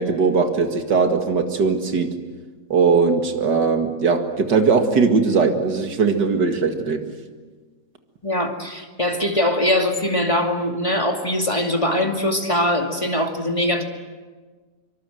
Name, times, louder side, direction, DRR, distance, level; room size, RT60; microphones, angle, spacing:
voice 1, 0.0-2.1 2.7-7.1, right 5 dB, 90° right, 5 dB, 2.6 m, -19 dB
voice 2, 8.2-13.8, left 1 dB, 20° left, 3 dB, 2.4 m, -22 dB
25.5 x 24.5 x 7.8 m, 1.4 s
omnidirectional pair, 1.8 m